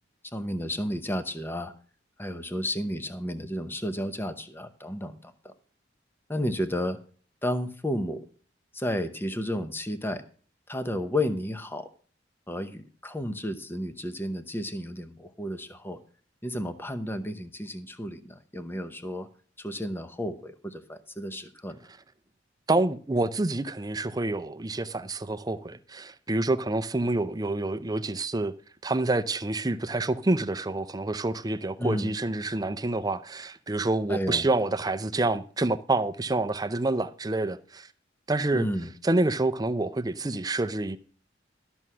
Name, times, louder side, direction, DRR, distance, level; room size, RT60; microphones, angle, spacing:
voice 1, 0.3-1.7 2.2-5.5 6.3-7.0 7.4-8.2 8.7-10.2 10.7-11.9 12.5-16.0 16.4-19.3 19.6-21.8 31.8-32.1 34.1-34.5 38.5-38.9, left 1 dB, 10° left, 0.8 m, -32 dB
voice 2, 22.7-28.5 28.8-37.9 38.3-38.7 39.0-41.0, right 2 dB, 20° right, 0.5 m, -27 dB
13.0 x 6.2 x 5.6 m
head